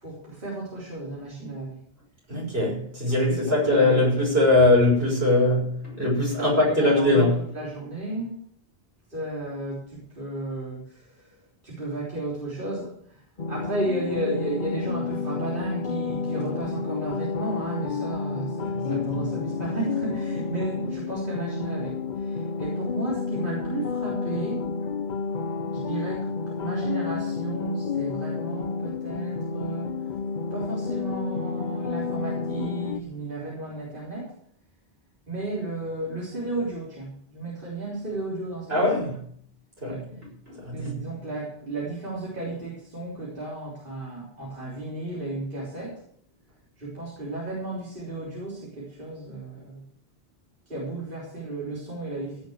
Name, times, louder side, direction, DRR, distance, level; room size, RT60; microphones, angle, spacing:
voice 1, 0.0-1.8 3.1-4.0 6.4-8.3 9.1-11.3 11.6-13.2 13.5-24.7 25.7-29.9 30.5-34.3 35.3-38.7 39.8-40.0 40.7-46.0 46.8-49.8 50.7-52.4, right 2 dB, 55° right, 3.9 m, -33 dB
voice 2, 2.3-7.3 18.8-19.2 38.7-39.2 39.8-40.0 40.6-40.9, left 2 dB, 75° right, 6.5 m, -21 dB
sound 1, 13.4-33.0, left 5 dB, 50° left, 0.9 m, -30 dB
16.5 x 6.5 x 8.0 m
omnidirectional pair, 1.0 m